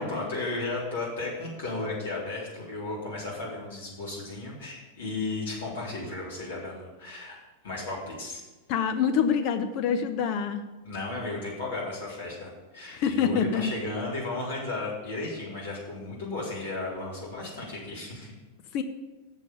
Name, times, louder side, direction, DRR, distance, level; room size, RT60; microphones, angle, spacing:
voice 1, 0.0-7.4 7.6-8.4 10.8-18.3, left 2 dB, 60° left, -5 dB, 3.8 m, -34 dB
voice 2, 8.7-10.6 12.9-13.7 18.7-18.8, left 7 dB, 45° left, 8 dB, 0.7 m, -26 dB
7.4 x 7.1 x 6.9 m, 1.2 s
figure-of-eight pair, 90°, 0 cm